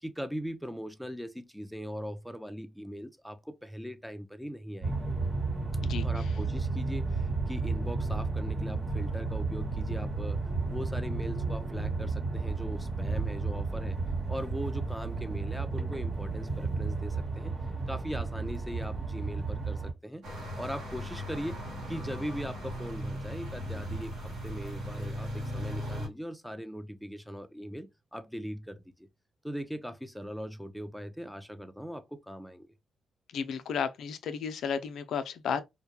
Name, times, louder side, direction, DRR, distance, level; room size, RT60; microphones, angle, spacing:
voice 1, 0.0-4.9 6.0-10.4 10.7-14.0 14.3-17.6 17.9-20.3 20.6-21.6 21.9-28.8 29.4-32.7, equal, ahead, 0.4 m, -40 dB
sound 1, 4.8-19.9, right 3 dB, 50° right, 1.1 m, -32 dB
sound 2, 20.2-26.1, equal, 75° right, 1.1 m, -37 dB
voice 2, 33.3-35.6, left 6 dB, 80° left, 0.3 m, -33 dB
2.2 x 2.1 x 2.9 m
cardioid pair, 65°, 0 cm